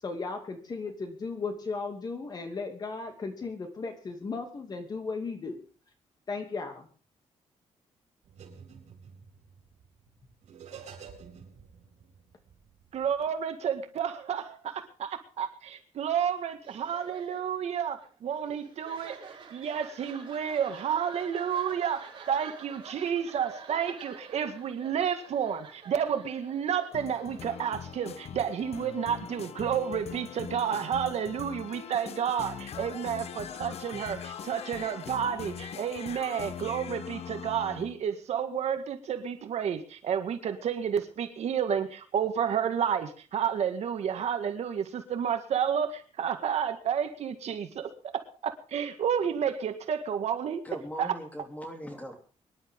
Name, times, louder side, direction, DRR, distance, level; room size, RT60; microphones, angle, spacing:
voice 1, 0.0-5.6 6.3-6.9, left 4 dB, 35° left, 5 dB, 2.7 m, -36 dB
sound 1, 8.2-13.3, right 6 dB, 90° right, 4.3 m, -50 dB
voice 2, 12.9-19.2 19.5-50.6 51.0-51.1, right 8 dB, 65° right, 7 dB, 1.9 m, -31 dB
sound 2, 16.6-28.3, right 6 dB, 45° right, 5.0 m, -49 dB
sound 3, 26.9-38.0, left 8 dB, 60° left, 1.0 m, -41 dB
voice 3, 50.6-52.2, equal, 15° left, 3 dB, 3.1 m, -40 dB
24.5 x 11.0 x 3.8 m, 0.38 s
wide cardioid pair, 160°, 12 cm